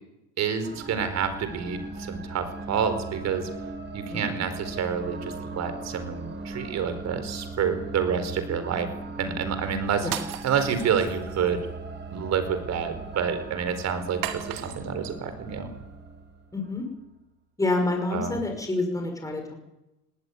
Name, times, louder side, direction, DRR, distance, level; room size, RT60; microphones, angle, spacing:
voice 1, 0.4-3.5 3.9-8.9 9.2-11.7 12.1-15.7 18.1-18.4, right 7 dB, 45° right, 10 dB, 4.7 m, -28 dB
sound 1, 0.6-16.8, right 3 dB, 30° right, 4.7 m, -39 dB
sound 2, 10.0-11.5 14.2-15.1, right 12 dB, 65° right, 2.8 m, -36 dB
voice 2, 16.5-16.8 17.6-19.6, left 2 dB, 10° left, 3 dB, 5.9 m, -28 dB
19.0 x 18.5 x 9.5 m, 0.95 s
supercardioid pair, 115°, 38 cm